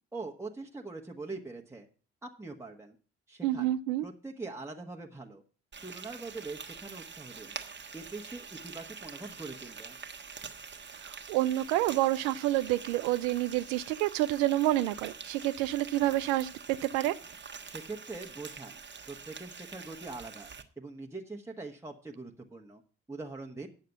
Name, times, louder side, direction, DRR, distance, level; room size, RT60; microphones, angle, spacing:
voice 1, 0.1-1.9 2.2-2.9 3.3-3.7 4.0-5.4 5.8-7.5 7.9-10.0 17.6-18.8 19.1-20.5 20.8-22.8 23.1-23.7, right 3 dB, 10° right, 1.4 m, -43 dB
voice 2, 3.4-4.0 11.0-17.2, right 15 dB, 75° right, 0.5 m, -28 dB
Frying (food), 5.7-20.6, right 5 dB, 35° right, 1.3 m, -46 dB
9.5 x 6.6 x 7.2 m
hypercardioid pair, 40°, 33 cm